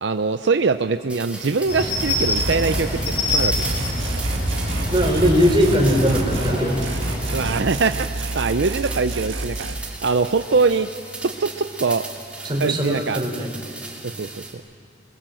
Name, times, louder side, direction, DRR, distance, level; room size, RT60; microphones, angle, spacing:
voice 1, 0.0-3.8 7.3-8.1 8.3-10.9 11.2-12.0 12.6-13.2 14.0-14.6, right 4 dB, 65° right, 9 dB, 0.6 m, -23 dB
sound 1, 1.1-14.5, right 2 dB, 5° right, 2.8 m, -37 dB
sound 2, 1.7-7.5, left 1 dB, 50° left, 7.6 m, -25 dB
sound 3, 2.4-2.9 3.3-6.6 6.8-9.7, right 2 dB, 85° right, 1.6 m, -29 dB
voice 2, 4.9-6.8 12.4-13.5, equal, 25° right, 2 dB, 3.6 m, -20 dB
27.5 x 21.5 x 7.7 m, 2.3 s
head